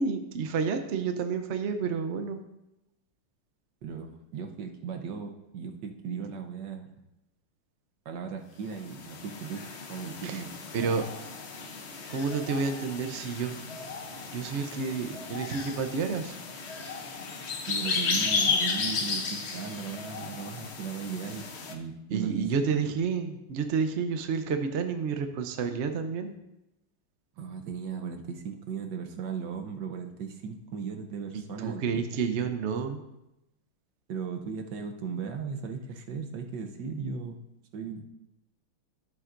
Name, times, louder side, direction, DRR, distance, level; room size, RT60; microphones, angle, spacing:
voice 1, 0.0-2.4 10.2-10.4 10.7-11.0 12.1-13.6 14.3-16.4 22.1-26.4 31.6-33.0, right 5 dB, 80° right, 6 dB, 0.6 m, -30 dB
voice 2, 3.8-6.9 8.0-9.6 9.9-10.5 17.7-22.5 27.4-32.2 34.1-37.4 37.7-38.1, right 6 dB, 65° right, 4 dB, 1.3 m, -37 dB
sound 1, 8.8-21.7, left 4 dB, 65° left, 0.6 m, -34 dB
13.0 x 7.8 x 2.6 m, 0.90 s
omnidirectional pair, 2.3 m